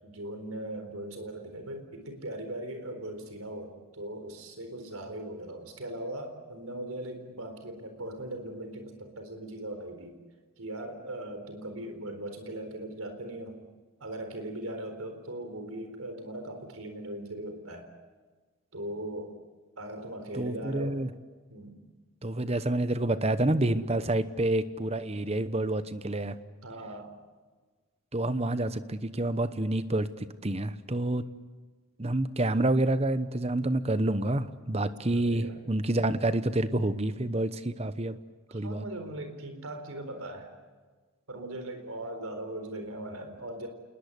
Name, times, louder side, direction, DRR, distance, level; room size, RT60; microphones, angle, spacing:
voice 1, 0.0-10.2 10.6-13.6 14.0-17.9 18.7-19.3 19.8-21.0 21.5-21.8 26.6-27.1 35.1-35.6 38.5-40.5 41.3-43.7, right 1 dB, 80° right, 7 dB, 4.2 m, -39 dB
voice 2, 20.3-21.1 22.2-26.3 28.1-31.2 32.0-38.2 38.5-38.8, right 1 dB, 30° right, 13 dB, 1.0 m, -28 dB
28.0 x 20.5 x 8.2 m, 1.4 s
head